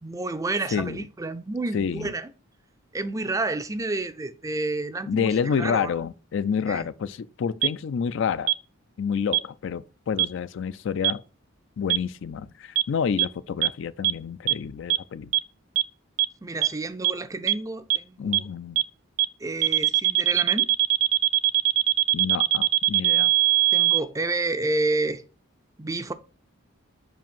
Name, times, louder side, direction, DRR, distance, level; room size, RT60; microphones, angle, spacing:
voice 1, 0.0-2.3 2.9-5.9 6.7-6.9 16.4-18.5 19.4-20.7 23.7-25.2 25.8-26.1, right 2 dB, 15° right, 0.4 m, -30 dB
voice 2, 0.7-1.0 1.7-2.1 5.1-8.5 9.0-11.2 11.8-15.3 18.2-18.8 22.1-23.3, left 6 dB, 60° left, 0.4 m, -28 dB
sound 1, 7.6-7.7 8.5-8.6 9.3-9.4 10.2-10.3 11.0-11.1 11.9-12.0 12.8-12.9 13.2-13.3 13.6-13.7 14.0-14.1 14.5-14.6 14.9-15.0 15.3-15.4 15.8-15.9 16.2-16.3 16.6-16.7 17.0-17.1 17.5-17.6 17.9-18.0 18.3-18.4 18.8-18.9 19.2-19.3 19.6-24.0, right 19 dB, 85° right, 0.5 m, -20 dB
5.1 x 5.0 x 5.4 m
head